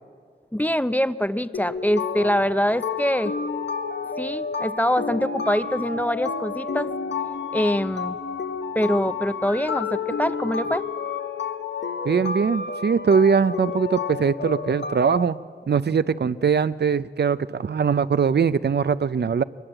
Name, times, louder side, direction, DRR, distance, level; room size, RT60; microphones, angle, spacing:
voice 1, 0.5-3.3 4.2-6.9 7.5-8.2 8.7-10.8, equal, 10° left, 14 dB, 0.5 m, -24 dB
sound 1, 1.5-15.3, left 5 dB, 90° left, 0.8 m, -30 dB
voice 2, 12.0-15.4 15.7-19.4, right 6 dB, 70° right, 15 dB, 0.5 m, -21 dB
22.5 x 20.5 x 7.9 m, 2.1 s
wide cardioid pair, 75°, 18 cm